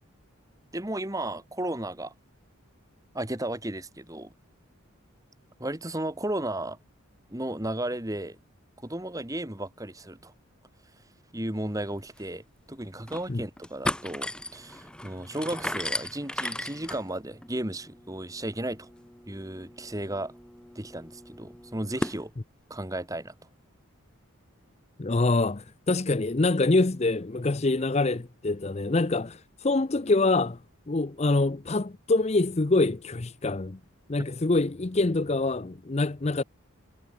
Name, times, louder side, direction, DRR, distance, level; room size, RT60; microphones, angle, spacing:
voice 1, 0.7-2.1 3.1-4.3 5.6-6.8 7.3-8.4 8.8-10.3 11.3-12.4 12.7-18.9 19.3-20.3 20.8-22.3 22.7-23.3, right 1 dB, 15° right, 1.7 m, -34 dB
sound 1, 11.8-11.9 12.2-12.3 12.8-13.3 13.6-22.2, left 1 dB, 5° left, 0.9 m, -37 dB
voice 2, 25.0-30.6 30.9-33.8 34.1-36.4, left 2 dB, 30° left, 0.6 m, -25 dB
head